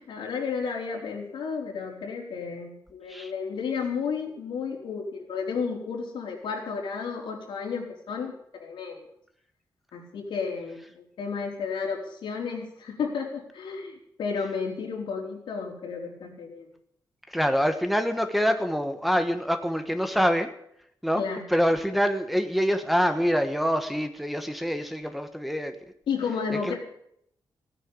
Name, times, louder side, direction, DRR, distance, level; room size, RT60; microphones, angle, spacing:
voice 1, 0.0-9.1 9.9-16.7 21.2-21.4 26.1-26.8, left 5 dB, 90° left, -1 dB, 4.5 m, -32 dB
voice 2, 17.3-20.5 21.0-21.2 21.5-25.7 26.6-26.8, equal, ahead, 7 dB, 1.3 m, -25 dB
16.5 x 10.0 x 8.5 m, 0.71 s
wide cardioid pair, 130°, 8 cm